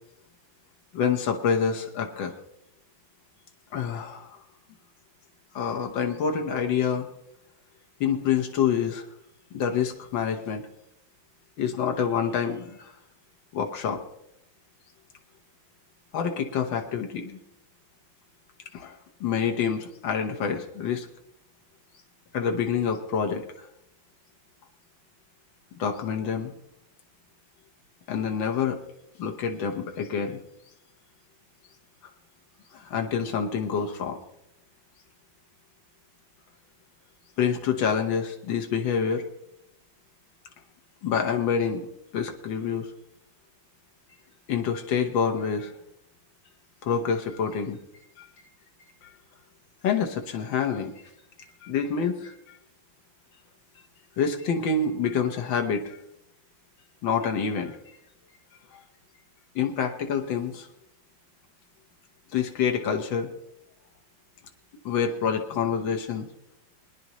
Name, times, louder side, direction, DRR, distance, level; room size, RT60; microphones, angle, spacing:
voice 1, 0.9-2.3 3.7-4.4 5.5-7.1 8.0-9.1 9.5-10.7 11.6-12.9 13.5-14.0 16.1-17.4 18.7-21.1 22.3-23.7 25.8-26.5 28.1-28.8 29.2-30.4 32.7-34.2 37.4-39.3 41.0-41.9 42.1-42.9 44.5-45.7 46.8-47.8 48.2-48.3 49.8-50.9 51.6-52.3 54.2-56.0 57.0-58.0 58.7-58.8 59.6-60.7 62.3-63.3 64.9-66.3, left 6 dB, 75° left, 3 dB, 1.9 m, -27 dB
22.5 x 10.0 x 3.1 m, 0.79 s
omnidirectional pair, 2.1 m